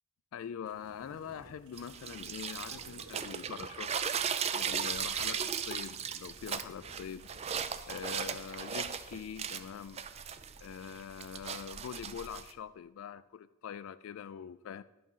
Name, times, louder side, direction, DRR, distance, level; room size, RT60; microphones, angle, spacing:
voice 1, 0.3-4.2 4.5-7.3 7.9-10.0 10.6-14.8, left 8 dB, 70° left, 14 dB, 0.3 m, -44 dB
sound 1, 0.6-7.8, right 2 dB, 65° right, 1.7 m, -58 dB
sound 2, 1.8-12.5, right 7 dB, 30° right, 0.4 m, -37 dB
10.5 x 6.2 x 5.5 m, 1.0 s
head